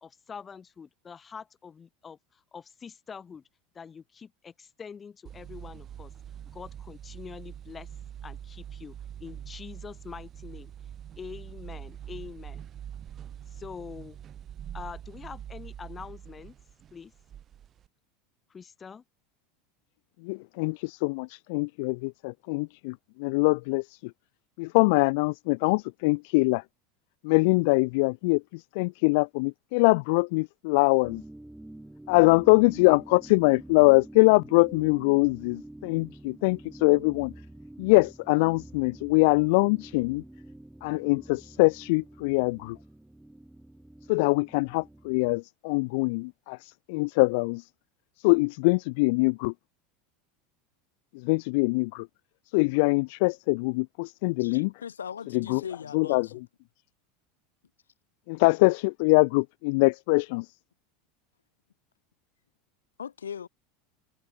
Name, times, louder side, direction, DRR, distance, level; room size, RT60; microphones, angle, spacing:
voice 1, 0.0-3.4 3.7-6.1 6.5-7.9 8.2-10.7 11.2-12.7 13.5-14.2 14.7-16.5 16.9-17.1 18.5-19.0, left 6 dB, 25° left, 1.3 m, -44 dB
sound 1, 5.3-17.9, right 10 dB, 35° right, 5.4 m, -44 dB
voice 2, 20.2-24.0 24.6-26.6 27.2-31.2 32.1-37.3 37.8-40.2 40.8-42.8 44.1-47.6 48.2-49.5 51.2-52.1 52.5-54.7 55.3-55.6 55.9-56.3 58.3-60.5, left 28 dB, 60° left, 0.4 m, -23 dB
sound 2, 31.0-45.4, right 1 dB, 5° right, 1.9 m, -47 dB
voice 3, 54.4-56.4 63.0-63.5, left 7 dB, 85° left, 1.2 m, -39 dB
hypercardioid pair, 80°, 0 cm